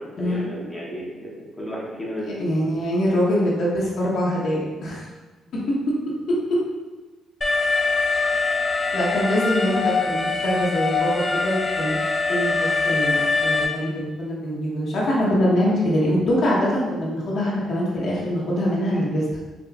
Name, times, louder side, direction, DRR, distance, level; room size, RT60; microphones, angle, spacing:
voice 1, 0.0-2.8 18.9-19.1, equal, 10° left, -5 dB, 0.9 m, -34 dB
voice 2, 2.4-5.0 6.3-6.6 8.9-12.0 12.3-19.2, equal, 65° left, -5 dB, 1.0 m, -23 dB
Alarm, 7.4-13.7, left 3 dB, 30° left, 0.5 m, -23 dB
4.9 x 2.3 x 2.4 m, 1.3 s
cardioid pair, 90°, 0 cm